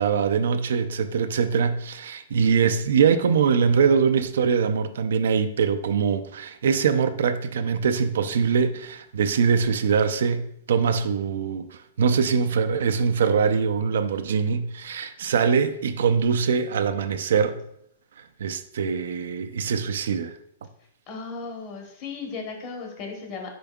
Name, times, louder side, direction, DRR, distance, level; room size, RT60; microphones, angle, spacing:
voice 1, 0.0-17.6 18.4-20.4, right 6 dB, 75° right, 0.4 m, -23 dB
voice 2, 21.1-23.5, left 4 dB, 35° left, 1.0 m, -36 dB
5.1 x 4.4 x 2.3 m
hypercardioid pair, 160°, 0 cm